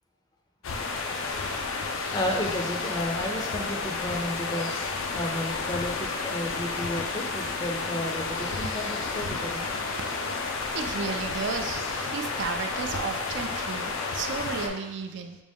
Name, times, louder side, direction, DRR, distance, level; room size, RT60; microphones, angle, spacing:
sound 1, 0.6-14.7, left 4 dB, 85° left, 0.5 m, -31 dB
voice 1, 2.1-4.7 5.1-9.7, left 1 dB, 20° left, 1 dB, 0.4 m, -32 dB
voice 2, 10.7-15.4, right 5 dB, 60° right, 6 dB, 0.3 m, -33 dB
5.1 x 2.2 x 3.4 m, 1.0 s
head